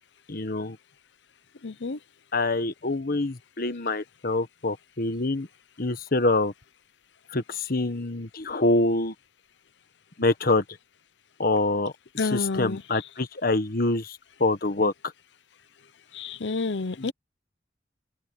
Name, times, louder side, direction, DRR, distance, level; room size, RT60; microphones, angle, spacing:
voice 1, 0.3-0.8 2.3-5.5 5.8-6.5 7.3-9.1 10.2-10.6 11.4-11.9 12.2-14.9 17.0-17.1, left 2 dB, 55° left, 1.5 m, -25 dB
voice 2, 1.6-2.0 12.2-12.8 16.1-17.1, left 3 dB, 85° left, 0.8 m, -29 dB
open air
head